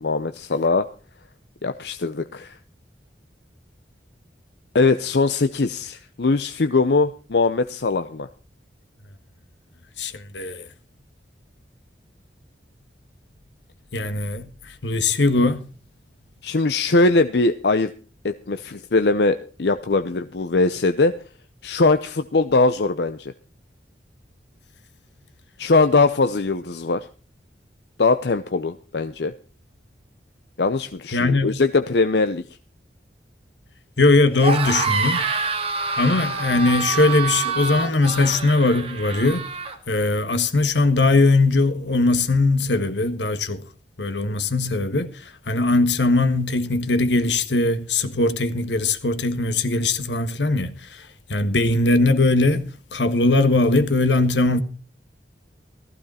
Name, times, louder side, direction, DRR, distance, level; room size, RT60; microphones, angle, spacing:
voice 1, 0.0-0.9 1.6-2.5 4.7-8.3 16.4-17.9 18.2-21.1 21.6-23.3 25.6-27.1 28.0-29.3 30.6-32.4, left 3 dB, 65° left, 0.7 m, -21 dB
voice 2, 10.0-10.7 13.9-15.6 31.1-31.6 34.0-35.3 36.0-39.5 39.9-43.6 44.0-54.6, left 2 dB, 85° left, 1.5 m, -20 dB
sound 1, 34.3-39.8, right 4 dB, 35° right, 1.9 m, -26 dB
15.0 x 15.0 x 4.2 m
head